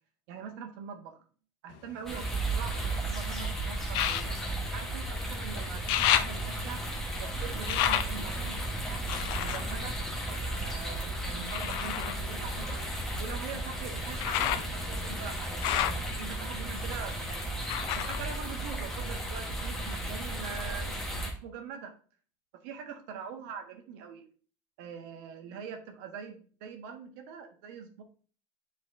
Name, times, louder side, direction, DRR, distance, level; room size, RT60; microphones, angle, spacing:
voice 1, 0.3-1.3 1.6-4.4 4.7-6.8 7.2-10.0 10.3-12.8 13.2-15.8 16.2-17.5 17.9-21.9 22.6-24.2 24.8-28.0, right 7 dB, 90° right, 5 dB, 1.3 m, -43 dB
sound 1, 1.7-3.1 3.9-5.4 5.7-10.8 11.5-19.3 19.6-20.5 20.9-21.0, left 11 dB, 60° left, 0.5 m, -33 dB
sound 2, 2.0-21.3, right 1 dB, 5° left, 1.2 m, -34 dB
10.0 x 4.0 x 2.6 m, 0.41 s
cardioid pair, 175°, 9 cm